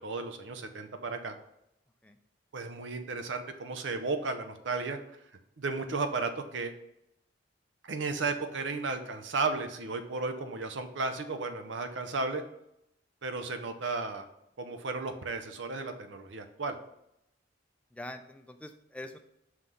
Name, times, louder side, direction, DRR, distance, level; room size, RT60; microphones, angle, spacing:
voice 1, 0.0-1.4 2.5-5.0 5.6-6.7 7.8-12.4 13.2-14.3 14.6-16.8, right 3 dB, 85° right, 8 dB, 0.6 m, -34 dB
voice 2, 17.9-19.2, left 1 dB, 5° left, 7 dB, 0.3 m, -44 dB
5.7 x 3.2 x 5.3 m, 0.80 s
head